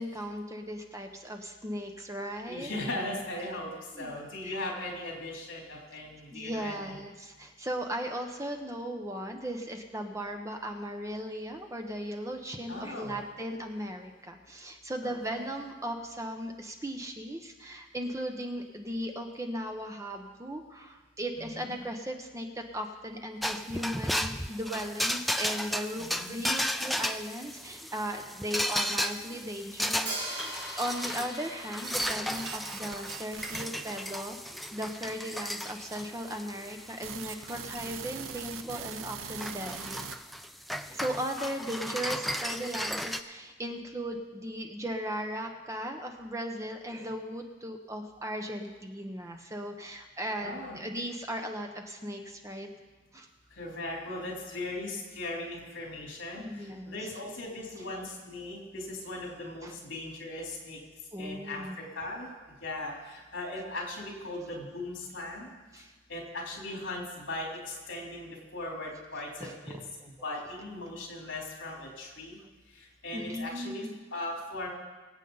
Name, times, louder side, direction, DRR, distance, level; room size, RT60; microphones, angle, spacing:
voice 1, 0.0-2.7 3.9-4.1 4.4-4.5 6.3-34.4 34.7-40.0 40.9-52.7 53.1-53.3 56.4-57.1 59.6-59.8 61.1-61.8 65.7-65.9 69.4-69.5 70.0-70.1 73.1-73.9, equal, 15° right, 4 dB, 0.8 m, -37 dB
voice 2, 2.5-3.7 4.0-7.0 12.7-13.2 15.0-15.5 21.4-21.8 26.0-26.3 50.4-50.8 53.6-60.8 61.2-62.3 62.6-65.5 66.1-69.7 70.2-72.4 72.8-74.7, left 2 dB, 70° left, -2 dB, 3.5 m, -38 dB
sound 1, 23.4-43.2, equal, ahead, 0.3 m, -35 dB
Hi-hat, 30.1-34.0, right 1 dB, 45° right, 4.2 m, -41 dB
sound 2, 31.8-40.2, right 7 dB, 90° right, 0.7 m, -42 dB
24.0 x 8.2 x 4.0 m, 1.3 s
head